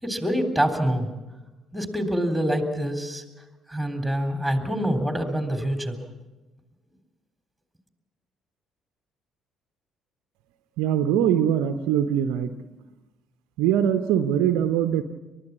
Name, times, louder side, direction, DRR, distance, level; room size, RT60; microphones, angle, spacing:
voice 1, 0.0-1.1 1.7-3.2 3.7-6.0, equal, ahead, 5 dB, 3.6 m, -25 dB
voice 2, 10.8-12.5 13.6-15.0, right 9 dB, 65° right, 9 dB, 0.8 m, -22 dB
29.5 x 13.5 x 7.3 m, 1.1 s
figure-of-eight pair, 50°, 0 cm